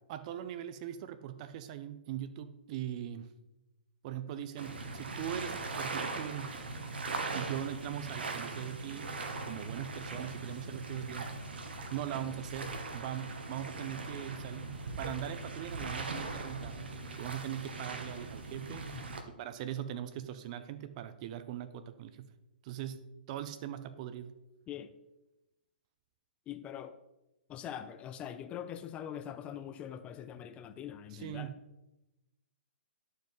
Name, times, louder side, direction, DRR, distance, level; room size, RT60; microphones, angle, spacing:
voice 1, 0.1-3.3 4.0-6.6 7.3-9.1 9.4-11.4 11.9-14.7 15.0-16.8 17.2-18.9 19.3-22.3 22.6-23.0 23.3-24.3 31.1-31.5, right 11 dB, 40° right, 12 dB, 0.5 m, -40 dB
sound 1, 4.6-19.2, right 3 dB, 75° right, 1.0 m, -40 dB
voice 2, 18.7-19.0 24.7-24.9 26.5-27.0 27.5-31.5, left 9 dB, 20° left, 10 dB, 0.3 m, -43 dB
11.5 x 4.6 x 3.1 m, 0.97 s
hypercardioid pair, 130°, 6 cm